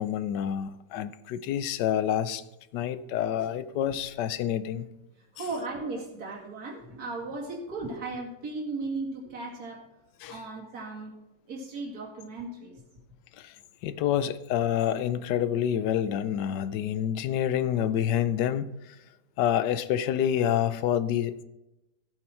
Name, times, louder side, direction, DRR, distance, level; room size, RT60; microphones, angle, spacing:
voice 1, 0.0-2.4 2.7-4.9 10.2-10.3 13.8-18.7 19.4-21.4, left 10 dB, 70° left, 1.2 m, -27 dB
voice 2, 5.3-9.8 10.3-11.1 11.5-12.7, right 3 dB, 50° right, 2.9 m, -36 dB
15.5 x 8.5 x 4.5 m
omnidirectional pair, 2.0 m